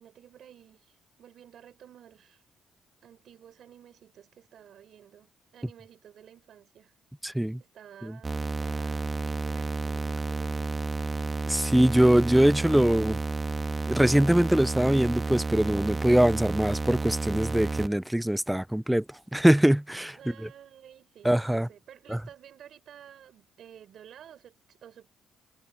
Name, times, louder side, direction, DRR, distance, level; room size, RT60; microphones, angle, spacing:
voice 1, 0.0-2.4 3.0-6.9 7.6-10.8 20.1-25.1, right 9 dB, 65° right, 4.9 m, -52 dB
voice 2, 7.2-7.6 8.0-8.1 11.5-13.2 13.9-19.0 19.3-20.2 21.2-21.7 22.1-22.2, right 1 dB, 5° right, 0.3 m, -22 dB
sound 1, 8.2-17.9, right 3 dB, 25° right, 1.6 m, -31 dB
cardioid pair, 90°, 0 cm